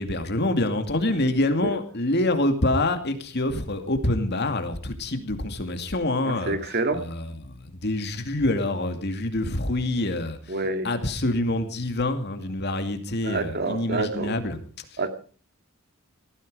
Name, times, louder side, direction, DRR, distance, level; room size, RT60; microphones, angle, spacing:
voice 1, 0.0-10.4 10.8-14.6, left 1 dB, 50° left, 7 dB, 2.4 m, -26 dB
voice 2, 6.2-7.0 10.5-10.9 13.2-14.4 15.0-15.1, right 2 dB, 45° right, 8 dB, 2.2 m, -27 dB
18.5 x 14.5 x 4.9 m, 0.40 s
head